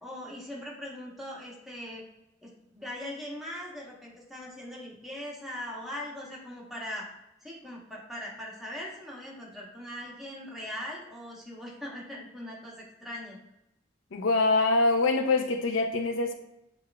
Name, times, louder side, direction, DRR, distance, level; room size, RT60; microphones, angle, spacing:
voice 1, 0.0-2.0 2.4-7.1 7.4-13.4, left 1 dB, ahead, -5 dB, 0.9 m, -40 dB
voice 2, 14.1-16.3, left 3 dB, 85° left, 5 dB, 0.5 m, -24 dB
7.3 x 2.4 x 2.3 m, 0.88 s
head